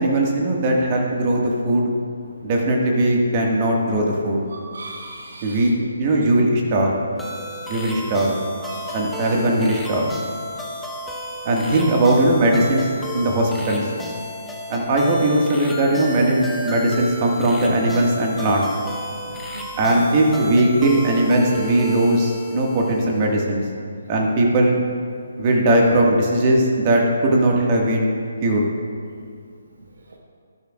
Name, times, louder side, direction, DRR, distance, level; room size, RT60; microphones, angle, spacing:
voice 1, 0.0-1.9 2.4-4.4 5.4-5.7 6.0-7.0 7.7-8.4 8.9-10.0 11.5-13.8 14.7-18.7 19.8-23.6 24.1-24.8 25.4-28.1 28.4-28.6, right 1 dB, 30° right, -1 dB, 1.8 m, -19 dB
voice 2, 4.5-5.7 8.6-9.0 19.1-19.7, right 2 dB, 55° right, 1 dB, 1.2 m, -38 dB
sound 1, 7.2-23.4, left 2 dB, 5° left, 1.0 m, -33 dB
19.0 x 11.0 x 2.4 m, 2.2 s
figure-of-eight pair, 140°, 0 cm